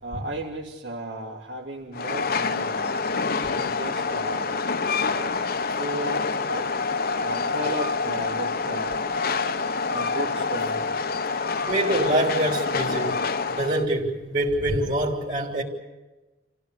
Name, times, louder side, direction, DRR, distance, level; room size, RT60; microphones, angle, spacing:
voice 1, 0.0-3.0 3.5-4.6 5.1-5.4 5.7-6.7 7.2-9.0 9.9-10.8, right 1 dB, 85° right, -3 dB, 2.8 m, -35 dB
Train, 1.9-13.9, left 4 dB, 55° left, 1.0 m, -27 dB
voice 2, 11.7-13.2 13.6-15.6, right 1 dB, 45° right, -1 dB, 3.5 m, -25 dB
28.0 x 16.5 x 8.3 m, 1.2 s
head